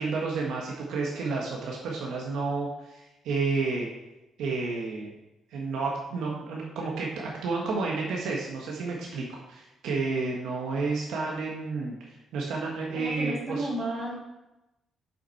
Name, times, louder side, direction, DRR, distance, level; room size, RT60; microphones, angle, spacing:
voice 1, 0.0-3.9 4.4-5.1 5.5-13.7, right 4 dB, 85° right, -2 dB, 1.2 m, -31 dB
voice 2, 12.9-14.2, right 1 dB, 35° right, -5 dB, 2.9 m, -32 dB
7.2 x 5.7 x 4.4 m, 0.98 s
cardioid pair, 125°, 0 cm